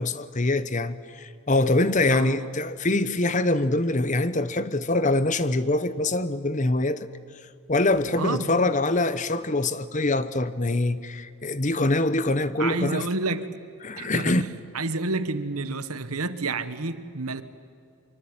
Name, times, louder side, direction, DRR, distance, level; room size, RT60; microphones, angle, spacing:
voice 1, 0.0-7.1 7.7-13.0 13.8-14.4, left 2 dB, 35° left, 0.9 m, -24 dB
voice 2, 2.1-2.5 8.2-8.6 12.6-13.5 14.0-14.5 14.7-17.4, right 3 dB, 85° right, 1.4 m, -29 dB
24.5 x 24.0 x 8.9 m
head